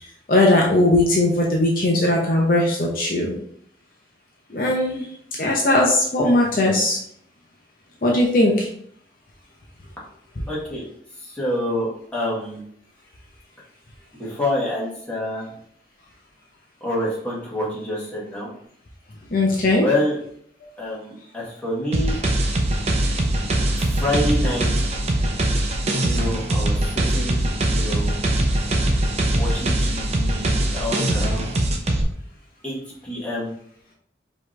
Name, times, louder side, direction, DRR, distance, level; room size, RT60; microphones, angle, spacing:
voice 1, 0.3-3.3 4.5-5.1 5.4-7.0 8.0-8.7 19.3-19.8 23.5-23.6, left 1 dB, 50° left, -2 dB, 0.7 m, -19 dB
voice 2, 10.5-10.8 11.2-12.6 14.2-15.5 16.8-18.5 19.8-20.2 20.8-22.2 23.8-24.8 26.0-28.2 29.3-31.5 32.6-32.8 33.0-33.5, left 1 dB, 5° left, -7 dB, 1.5 m, -27 dB
sound 1, 21.9-32.0, right 1 dB, 35° right, 0.6 m, -22 dB
5.0 x 3.1 x 3.3 m, 0.64 s
head